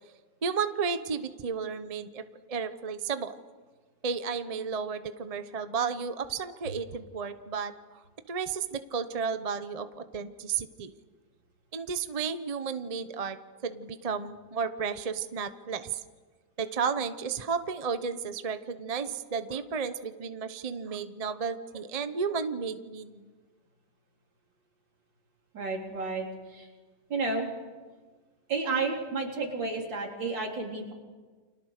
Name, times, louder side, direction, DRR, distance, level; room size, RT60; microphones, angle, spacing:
voice 1, 0.4-2.2 2.5-3.4 4.0-10.9 11.7-13.4 13.6-16.0 16.6-23.3, right 6 dB, 30° right, 10 dB, 0.7 m, -33 dB
voice 2, 25.5-26.7 27.1-27.5 28.5-30.9, right 3 dB, 75° right, 0 dB, 4.4 m, -31 dB
30.0 x 26.0 x 6.7 m, 1.4 s
omnidirectional pair, 2.0 m